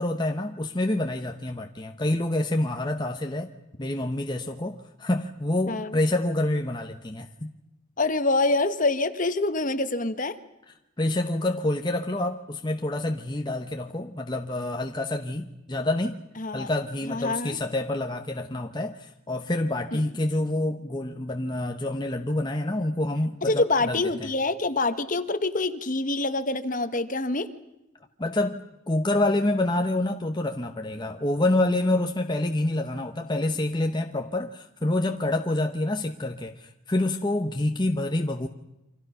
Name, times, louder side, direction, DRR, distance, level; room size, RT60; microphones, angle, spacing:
voice 1, 0.0-3.5 3.8-7.5 11.0-16.2 16.5-24.3 28.2-38.5, left 1 dB, 20° left, 4 dB, 1.0 m, -27 dB
voice 2, 5.7-6.0 8.0-10.4 16.4-16.7 17.1-17.6 19.9-20.0 23.4-27.5, left 2 dB, 40° left, 10 dB, 1.3 m, -26 dB
28.5 x 25.5 x 5.8 m, 0.93 s
head